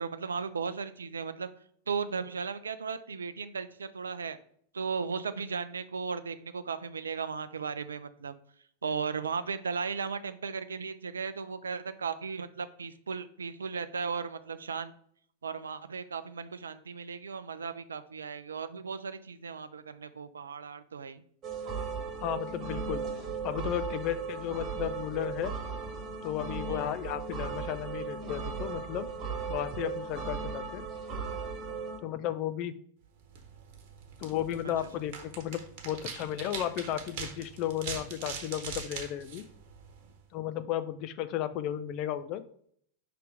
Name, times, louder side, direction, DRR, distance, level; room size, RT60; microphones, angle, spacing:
voice 1, 0.0-1.5 1.9-4.4 4.7-8.3 8.8-14.9 15.4-21.2 26.7-26.8, right 5 dB, 70° right, 12 dB, 0.4 m, -36 dB
sound 1, 21.4-32.0, right 5 dB, 30° right, 1.3 m, -37 dB
voice 2, 22.2-23.1 23.4-25.5 26.2-29.1 29.5-30.9 32.0-32.8 34.2-39.5 40.3-42.4, left 11 dB, 40° left, 11 dB, 0.5 m, -34 dB
sound 2, 33.2-40.2, right 6 dB, 50° right, 1.1 m, -43 dB
5.8 x 3.5 x 5.0 m, 0.63 s
figure-of-eight pair, 90°, 0 cm